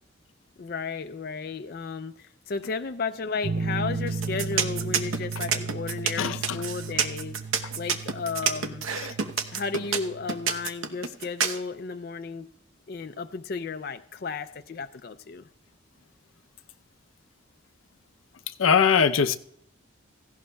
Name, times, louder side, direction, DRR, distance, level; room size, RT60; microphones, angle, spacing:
voice 1, 0.6-7.4 7.7-8.9 9.5-12.5 12.9-15.4, left 4 dB, 50° left, 0.4 m, -33 dB
sound 1, 3.4-10.7, right 4 dB, 45° right, 0.5 m, -35 dB
sound 2, 4.1-11.6, right 6 dB, 90° right, 0.9 m, -27 dB
voice 2, 6.2-6.6 18.6-19.4, left 6 dB, 90° left, 0.6 m, -21 dB
16.5 x 16.0 x 2.3 m
head